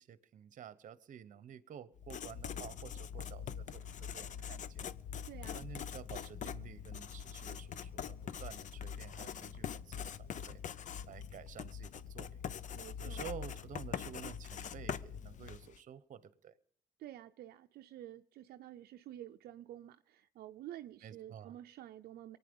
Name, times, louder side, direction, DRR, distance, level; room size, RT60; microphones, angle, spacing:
voice 1, 0.0-4.9 5.5-10.6 11.0-12.4 13.0-16.5 21.0-21.5, right 9 dB, 55° right, 1.0 m, -51 dB
Writing, 2.0-15.8, left 8 dB, 50° left, 0.6 m, -43 dB
voice 2, 5.3-5.7 12.7-13.3 17.0-22.4, right 12 dB, 75° right, 0.5 m, -50 dB
23.5 x 9.4 x 5.4 m
cardioid pair, 110°, 16 cm